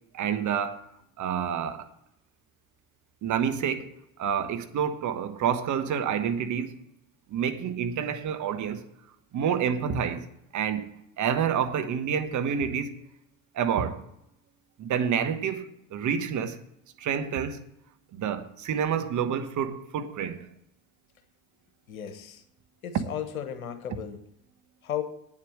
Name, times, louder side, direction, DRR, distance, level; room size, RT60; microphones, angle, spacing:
voice 1, 0.1-0.8 1.2-1.9 3.2-3.9 4.2-6.8 7.3-8.8 9.3-10.3 10.5-10.9 11.2-13.0 13.5-14.0 14.8-16.6 17.0-17.6 18.1-20.5, right 8 dB, 45° right, 1.2 m, -28 dB
voice 2, 21.9-22.4 22.8-24.2 24.8-25.0, left 9 dB, 80° left, 1.3 m, -34 dB
8.9 x 7.3 x 8.9 m
figure-of-eight pair, 60°, 42 cm